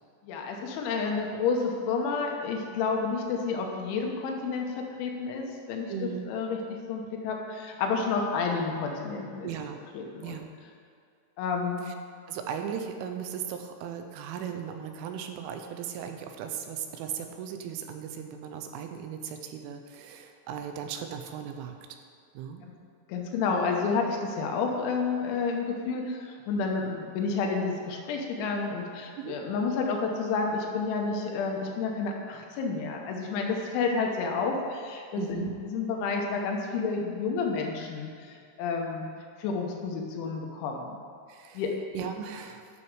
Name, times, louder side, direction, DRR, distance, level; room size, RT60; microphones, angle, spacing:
voice 1, 0.2-9.5 9.9-10.4 11.4-11.8 22.6-22.8 23.1-39.1 39.4-41.0 41.5-41.7, left 4 dB, 80° left, 1 dB, 3.2 m, -30 dB
voice 2, 5.9-6.3 9.4-9.8 10.2-10.5 11.8-11.9 12.3-21.8 22.4-22.7 29.2-29.4 35.2-35.5 41.3-41.6 41.9-42.7, right 8 dB, 85° right, 6 dB, 3.1 m, -37 dB
10.5 x 6.1 x 4.7 m, 2.4 s
omnidirectional pair, 5.6 m